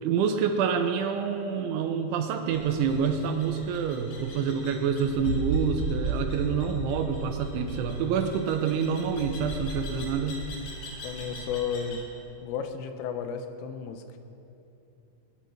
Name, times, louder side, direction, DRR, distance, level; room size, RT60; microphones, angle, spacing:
voice 1, 0.0-10.4, right 6 dB, 85° right, 6 dB, 3.0 m, -27 dB
sound 1, 2.5-12.0, right 1 dB, 55° left, 4.5 m, -36 dB
voice 2, 11.0-12.0 12.4-14.0, left 7 dB, 90° left, 7 dB, 3.6 m, -33 dB
21.0 x 10.0 x 5.9 m, 2.8 s
omnidirectional pair, 5.8 m